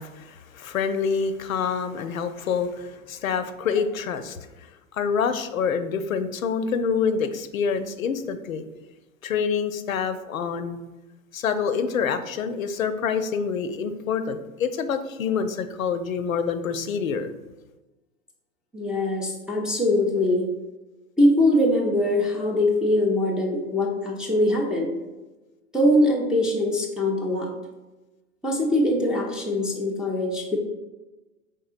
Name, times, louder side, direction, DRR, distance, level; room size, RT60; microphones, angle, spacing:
voice 1, 0.0-4.4 4.9-8.6 9.2-10.8 11.3-17.3, left 6 dB, 80° left, 10 dB, 0.5 m, -26 dB
voice 2, 18.7-20.5 21.2-24.9 25.7-27.5 28.4-30.6, left 1 dB, ahead, -4 dB, 0.4 m, -22 dB
5.2 x 3.7 x 2.4 m, 1.1 s
figure-of-eight pair, 100°, 40 cm